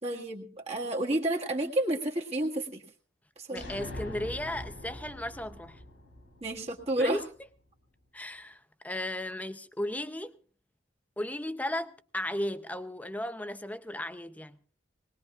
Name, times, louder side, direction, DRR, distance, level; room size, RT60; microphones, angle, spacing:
voice 1, 0.0-2.8 3.4-3.7 6.4-7.2, right 1 dB, 35° right, 1.6 m, -30 dB
sound 1, 3.5-7.2, left 1 dB, 85° left, 4.5 m, -43 dB
voice 2, 3.5-5.8 7.0-7.2 8.1-10.3 11.2-14.6, left 1 dB, 10° left, 0.6 m, -35 dB
20.0 x 20.0 x 2.4 m
head